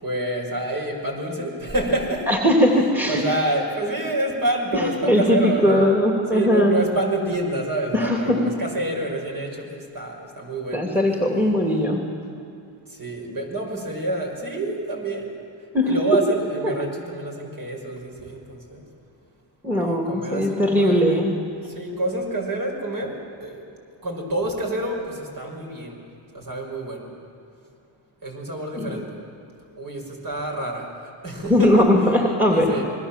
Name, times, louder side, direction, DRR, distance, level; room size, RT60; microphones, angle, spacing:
voice 1, 0.0-2.3 3.1-5.9 6.3-10.8 13.0-15.3 15.9-18.8 19.8-21.2 21.7-23.1 23.4-23.6 24.0-26.0 26.3-27.1 28.2-29.0 29.8-30.9 31.2-31.7 32.5-32.8, right 2 dB, 45° right, 1 dB, 6.0 m, -27 dB
voice 2, 2.3-3.2 4.7-6.8 7.9-8.4 10.7-12.1 15.7-16.0 16.6-16.7 19.6-21.4 28.7-29.0 31.5-32.7, left 1 dB, 5° right, 1 dB, 2.7 m, -19 dB
28.0 x 21.5 x 7.5 m, 2.4 s
cardioid pair, 100°, 48 cm